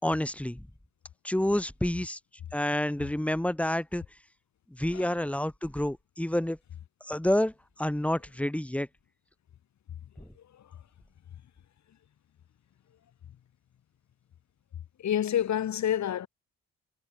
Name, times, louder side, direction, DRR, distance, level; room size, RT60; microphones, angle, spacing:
voice 1, 0.0-0.6 1.2-2.2 2.5-4.0 4.7-6.6 7.0-7.5 7.8-8.9 10.2-10.3, left 1 dB, 5° left, 2.2 m, -28 dB
voice 2, 15.0-16.3, left 10 dB, 65° left, 7.1 m, -28 dB
cardioid pair, 90°, 30 cm